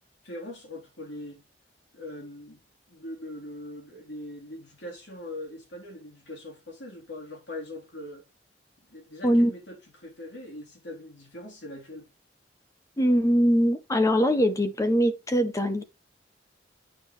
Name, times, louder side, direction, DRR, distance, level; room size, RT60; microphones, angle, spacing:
voice 1, 0.2-1.4 1.9-2.6 2.9-8.2 8.9-12.1, left 1 dB, 80° left, 3.4 m, -41 dB
voice 2, 13.0-15.8, equal, 20° left, 0.5 m, -22 dB
9.0 x 4.9 x 3.1 m
head